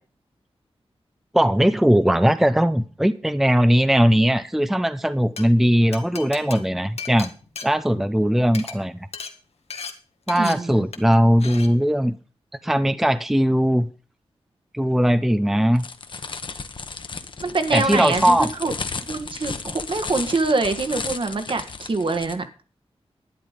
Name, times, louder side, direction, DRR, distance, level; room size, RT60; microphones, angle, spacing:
voice 1, 1.3-7.3 7.6-9.0 10.3-12.2 12.6-13.9 14.7-15.9 17.7-18.5, equal, 5° right, 0.6 m, -19 dB
Glass, 5.1-5.4 5.9-8.2 8.5-8.7 9.1-9.3 9.7-9.9 10.3-10.5 10.9-11.1 11.4-11.7, left 5 dB, 80° left, 1.8 m, -35 dB
voice 2, 10.3-10.8 17.4-18.7 19.1-22.4, right 3 dB, 55° right, 1.7 m, -24 dB
sound 1, 15.8-22.4, left 4 dB, 50° left, 1.2 m, -34 dB
11.0 x 10.5 x 5.1 m
wide cardioid pair, 115°, 11 cm